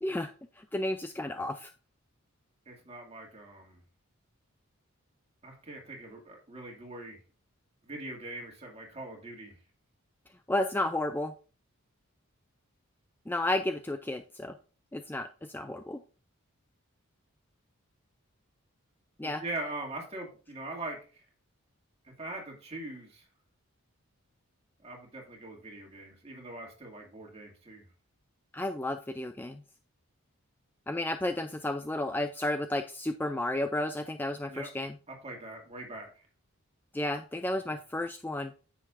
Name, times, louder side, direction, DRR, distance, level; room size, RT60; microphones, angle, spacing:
voice 1, 0.0-1.7 10.5-11.3 13.3-14.5 14.9-15.3 15.5-16.0 19.2-19.4 28.5-29.6 30.9-34.9 36.9-38.5, left 1 dB, 10° left, 7 dB, 0.3 m, -32 dB
voice 2, 2.7-3.8 5.4-7.2 7.8-9.6 19.2-21.2 22.2-23.2 24.8-27.8 34.5-34.7 35.1-36.1, right 2 dB, 30° right, 0 dB, 2.3 m, -42 dB
9.8 x 7.3 x 2.6 m, 0.37 s
head